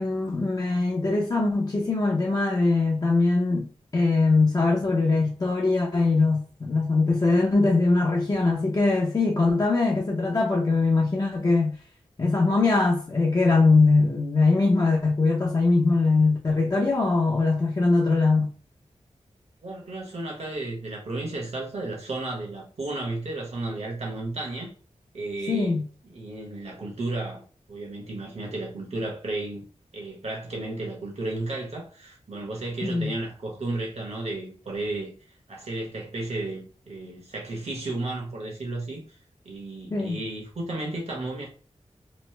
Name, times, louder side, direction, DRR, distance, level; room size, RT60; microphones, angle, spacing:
voice 1, 0.0-3.7 3.9-11.7 12.2-18.5 25.5-25.9 32.8-33.1 39.9-40.2, left 3 dB, 30° left, 0.6 m, -22 dB
voice 2, 19.6-24.7 25.1-27.4 27.7-29.6 29.9-35.1 35.5-39.0 39.4-41.5, right 2 dB, 65° right, 1.1 m, -33 dB
3.1 x 2.0 x 3.2 m
wide cardioid pair, 100°, 12 cm